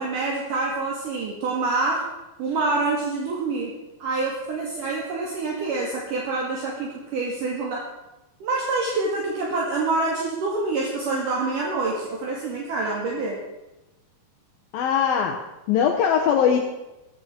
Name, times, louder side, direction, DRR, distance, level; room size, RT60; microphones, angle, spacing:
voice 1, 0.0-2.0 2.4-3.7 4.0-7.8 8.4-13.4, right 3 dB, 60° right, -3 dB, 3.5 m, -26 dB
voice 2, 14.7-15.4 15.7-16.6, left 8 dB, 75° left, 2 dB, 2.7 m, -20 dB
17.0 x 15.0 x 4.4 m, 1.0 s
omnidirectional pair, 4.4 m